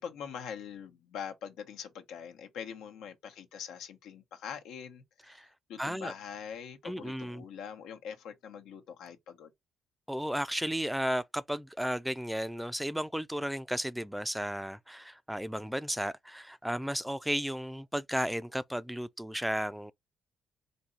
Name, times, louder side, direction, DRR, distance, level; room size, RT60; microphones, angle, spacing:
voice 1, 0.0-9.5, left 7 dB, 90° left, 1.0 m, -43 dB
voice 2, 5.8-6.1 6.8-7.4 10.1-19.9, equal, 5° right, 0.3 m, -34 dB
4.4 x 2.7 x 3.9 m
cardioid pair, 90°, 0 cm